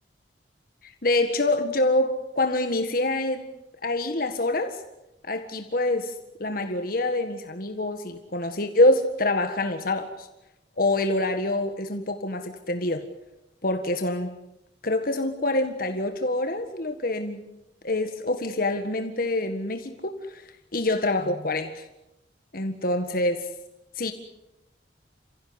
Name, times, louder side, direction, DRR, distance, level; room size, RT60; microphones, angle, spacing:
voice 1, 0.8-3.5 3.8-4.8 5.2-6.1 6.4-10.3 10.8-13.1 13.6-14.3 14.8-17.4 17.8-21.9 22.5-23.5 23.9-24.1, left 2 dB, 50° left, 7 dB, 1.7 m, -26 dB
29.0 x 16.0 x 9.7 m, 0.92 s
head